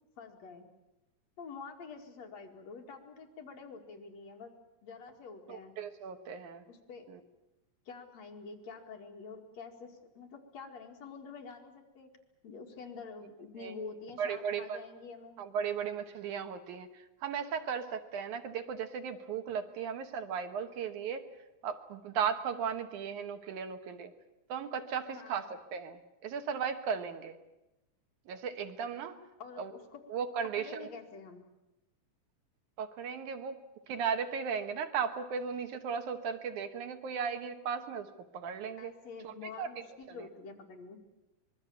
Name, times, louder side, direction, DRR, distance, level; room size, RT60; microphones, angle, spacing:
voice 1, 0.2-0.7 1.4-4.5 4.8-5.7 6.7-7.1 7.9-12.1 12.4-15.4 25.1-25.5 29.4-30.0 30.6-31.4 38.8-41.0, left 4 dB, 60° left, 2 dB, 3.3 m, -47 dB
voice 2, 5.5-6.6 7.1-7.2 13.6-13.7 14.2-14.8 15.4-21.3 21.6-24.1 24.5-27.4 28.3-29.2 29.6-29.7 30.1-30.9 32.8-33.6 33.9-38.9 39.2-39.7 40.1-40.3, right 7 dB, 80° right, 7 dB, 2.8 m, -36 dB
25.0 x 22.0 x 7.1 m, 0.96 s
omnidirectional pair, 3.5 m